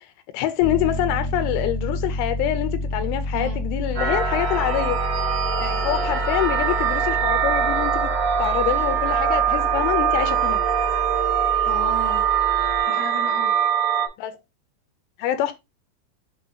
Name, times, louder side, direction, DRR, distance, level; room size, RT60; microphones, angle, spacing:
voice 1, 0.3-5.0 5.8-8.1 8.4-10.6 14.2-14.3 15.2-15.5, left 12 dB, 80° left, 3.3 m, -25 dB
Piano, 0.6-12.8, left 1 dB, 50° right, 1.2 m, -30 dB
sound 1, 4.0-14.1, right 8 dB, 80° right, 1.4 m, -22 dB
voice 2, 11.6-12.2 12.6-13.5, right 1 dB, 50° left, 2.1 m, -34 dB
7.5 x 3.2 x 4.0 m
omnidirectional pair, 5.6 m